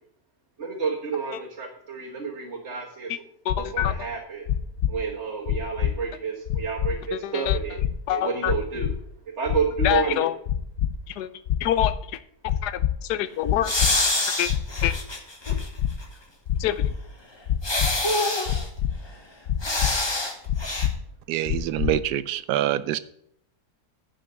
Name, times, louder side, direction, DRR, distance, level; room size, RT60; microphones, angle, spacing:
voice 1, 0.6-3.1 3.6-4.5 4.9-7.8 8.1-8.9 9.4-10.3, right 5 dB, 45° right, -3 dB, 1.6 m, -30 dB
voice 2, 3.4-4.1 7.1-7.6 8.1-8.5 9.8-10.4 11.1-11.3 11.6-12.2 12.6-13.7 14.4-14.5 14.8-14.9 16.6-16.9, left 12 dB, 80° left, 13 dB, 1.2 m, -26 dB
sound 1, 3.5-3.9 4.5-4.9 5.5-5.9 6.5-6.9 7.5-7.9 8.5-8.9 9.5-9.9 10.5-10.9 11.5-11.9 12.5-12.9 13.5-13.9 14.5-14.9 15.5-15.9 16.5-16.9 17.5-17.9 18.5-18.9 19.5-19.9 20.5-20.9 21.5-21.9, left 10 dB, 55° left, 0.8 m, -24 dB
sound 2, 13.6-15.7 16.0-16.1 17.6-18.7 19.6-20.3 20.6-20.9, left 2 dB, 20° left, 1.0 m, -25 dB
voice 3, 21.3-23.0, right 12 dB, 80° right, 16 dB, 1.2 m, -25 dB
10.5 x 5.6 x 6.7 m, 0.71 s
omnidirectional pair, 1.7 m